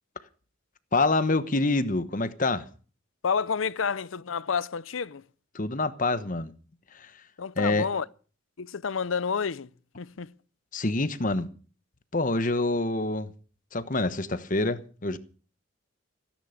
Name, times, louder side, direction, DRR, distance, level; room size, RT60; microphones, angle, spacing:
voice 1, 0.9-2.7 5.5-6.5 6.9-7.1 7.6-7.9 10.7-11.5 12.1-13.3 13.7-15.2, left 2 dB, 40° left, 1.1 m, -26 dB
voice 2, 3.2-5.2 7.4-8.0 8.6-9.7 10.0-10.3, left 6 dB, 85° left, 0.6 m, -29 dB
17.5 x 10.5 x 6.6 m
head